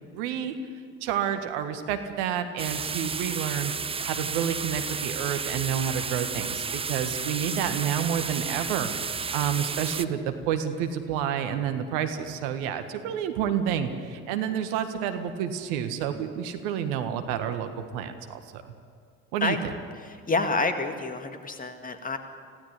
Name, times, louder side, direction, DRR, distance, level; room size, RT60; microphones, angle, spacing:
voice 1, 0.1-0.5 1.0-3.7 4.0-18.7 19.3-19.6, right 9 dB, 60° right, 7 dB, 1.7 m, -29 dB
sound 1, 2.6-10.0, right 5 dB, 15° right, 0.6 m, -32 dB
voice 2, 20.0-22.2, left 3 dB, 20° left, 7 dB, 2.3 m, -28 dB
25.5 x 16.5 x 8.3 m, 2.1 s
figure-of-eight pair, 60°, 37 cm